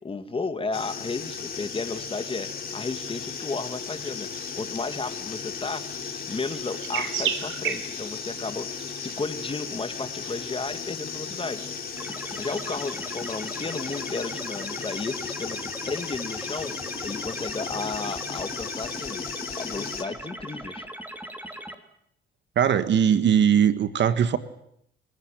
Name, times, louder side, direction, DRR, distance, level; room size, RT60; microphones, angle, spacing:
voice 1, 0.0-11.7 12.3-19.2 19.6-20.9, left 3 dB, 25° left, 9 dB, 2.1 m, -33 dB
sound 1, 0.7-20.0, left 6 dB, 50° left, 3.6 m, -36 dB
sound 2, 1.3-14.0, right 9 dB, 85° right, 3.3 m, -39 dB
sound 3, 12.0-21.7, right 1 dB, 10° right, 3.1 m, -39 dB
voice 2, 22.6-24.4, right 8 dB, 65° right, 11 dB, 1.7 m, -20 dB
28.0 x 17.0 x 9.1 m, 0.72 s
cardioid pair, 90°, 20 cm